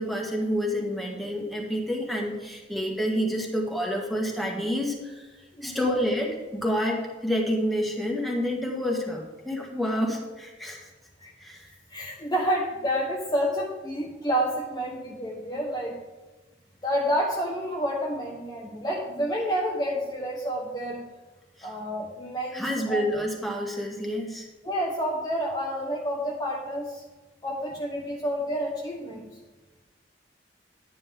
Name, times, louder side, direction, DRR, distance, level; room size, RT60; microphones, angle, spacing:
voice 1, 0.0-5.3 5.6-10.9 11.4-11.7 21.6-21.7 22.5-24.5, equal, ahead, -1 dB, 1.7 m, -28 dB
voice 2, 5.6-6.0 11.2-11.3 11.9-15.9 16.8-21.0 21.6-23.1 24.6-27.0 27.4-29.2, equal, 25° left, -2 dB, 1.2 m, -29 dB
11.0 x 9.6 x 3.7 m, 1.2 s
head